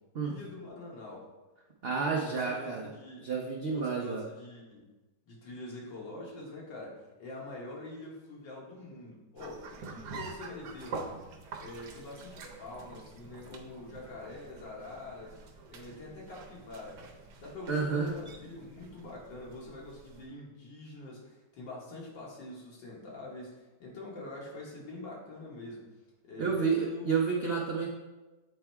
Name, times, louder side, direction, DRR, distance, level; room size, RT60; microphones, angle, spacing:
voice 1, 0.2-1.3 2.1-3.3 3.7-4.9 5.3-15.3 15.7-25.9 26.2-27.2, left 2 dB, 80° left, -3 dB, 2.2 m, -45 dB
voice 2, 1.8-2.9 3.2-4.2 17.7-18.1 26.4-27.9, right 5 dB, 90° right, -1 dB, 0.5 m, -30 dB
sound 1, 9.4-20.3, right 4 dB, 70° right, 1.3 m, -47 dB
7.8 x 3.5 x 4.4 m, 1.2 s
omnidirectional pair, 2.0 m